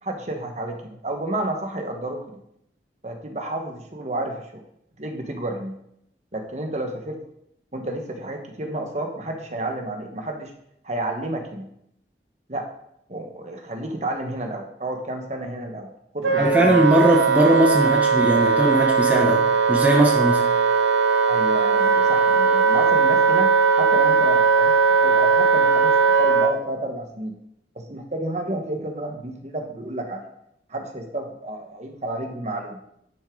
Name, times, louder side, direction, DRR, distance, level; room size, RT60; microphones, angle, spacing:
voice 1, 0.0-2.4 3.0-4.6 5.0-5.7 6.3-7.2 7.7-10.5 10.8-11.7 12.5-12.7 13.1-15.9 16.1-16.8 21.3-24.7 25.0-25.9 26.2-27.3 27.7-30.3 30.7-32.8, right 1 dB, 40° right, 3 dB, 1.3 m, -31 dB
Wind instrument woodwind instrument, 16.2-26.5, right 5 dB, 85° right, 1.2 m, -18 dB
voice 2, 16.4-20.4, equal, 10° right, -1 dB, 0.8 m, -19 dB
10.5 x 6.4 x 3.9 m, 0.75 s
head